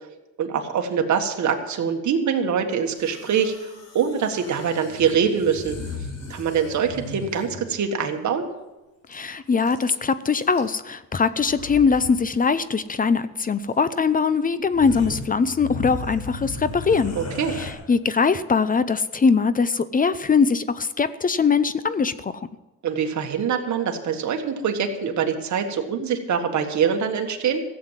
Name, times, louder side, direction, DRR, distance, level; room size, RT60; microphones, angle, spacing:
voice 1, 0.4-3.5 3.9-6.0 6.3-8.5 17.2-17.5 22.8-27.6, right 7 dB, 60° right, 4 dB, 1.7 m, -24 dB
sound 1, 2.9-7.6 9.1-9.2 9.4-10.0 10.4-10.9 11.4-12.1 12.4-12.6 13.7-13.8 14.3-14.4 14.6-17.7, left 3 dB, 60° left, 4.2 m, -36 dB
voice 2, 9.1-17.2 17.6-22.5, left 5 dB, 25° left, 14 dB, 0.6 m, -21 dB
15.0 x 7.8 x 7.4 m, 1.0 s
cardioid pair, 115°, 32 cm